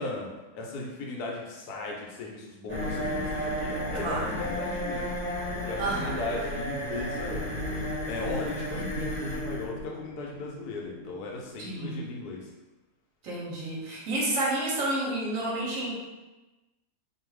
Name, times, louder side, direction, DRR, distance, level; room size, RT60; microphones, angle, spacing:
voice 1, 0.0-5.2 5.6-7.5 8.1-12.5, left 2 dB, 80° left, -1 dB, 1.1 m, -37 dB
sound 1, 2.7-12.3, equal, 40° right, 0.7 m, -34 dB
voice 2, 4.0-4.3 5.8-6.2 11.6-12.0 13.2-15.9, right 2 dB, 65° right, -5 dB, 1.0 m, -30 dB
2.6 x 2.3 x 3.1 m, 1.1 s
omnidirectional pair, 1.7 m